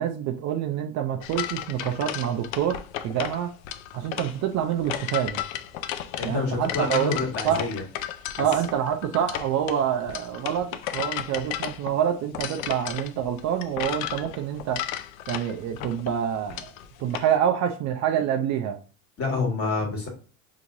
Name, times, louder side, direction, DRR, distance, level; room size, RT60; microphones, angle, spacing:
voice 1, 0.0-3.5 3.9-5.4 6.2-7.2 7.4-7.7 8.4-14.8 15.3-16.7 17.0-18.8, right 9 dB, 45° right, 0.5 m, -27 dB
sound 1, 1.2-17.3, left 11 dB, 80° left, 0.6 m, -34 dB
voice 2, 6.2-7.8 19.2-20.1, left 3 dB, 35° left, 1.7 m, -27 dB
4.3 x 3.0 x 2.6 m
supercardioid pair, 115°, 40 cm